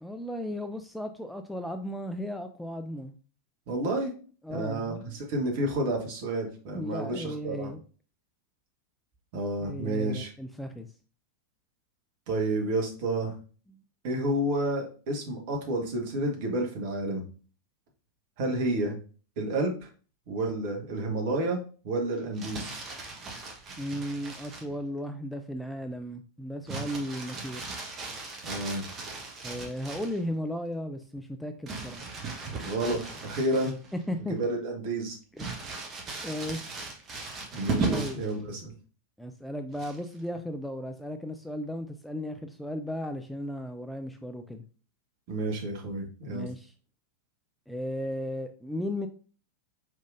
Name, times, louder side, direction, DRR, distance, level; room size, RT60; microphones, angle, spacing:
voice 1, 0.0-3.1 4.4-5.1 6.7-7.8 9.6-10.9 13.7-13.8 23.8-27.7 29.4-32.0 34.1-34.3 35.3-35.6 36.2-36.8 37.9-38.2 39.2-44.6 46.3-46.7 47.7-49.1, equal, ahead, 6 dB, 0.4 m, -35 dB
voice 2, 3.7-4.1 4.5-7.7 9.3-10.3 12.3-13.3 14.0-17.2 18.4-19.0 19.4-19.9 20.3-22.7 28.4-28.8 32.6-33.7 34.2-35.2 37.5-38.7 45.3-46.5, right 1 dB, 50° right, 2 dB, 1.3 m, -30 dB
Crumpling crinkling, 22.2-24.7 26.7-30.2 31.7-34.0 34.4-34.5 35.4-38.3 39.7-40.2, right 3 dB, 25° right, 1.0 m, -37 dB
4.8 x 3.7 x 2.5 m, 0.39 s
figure-of-eight pair, 90°, 0 cm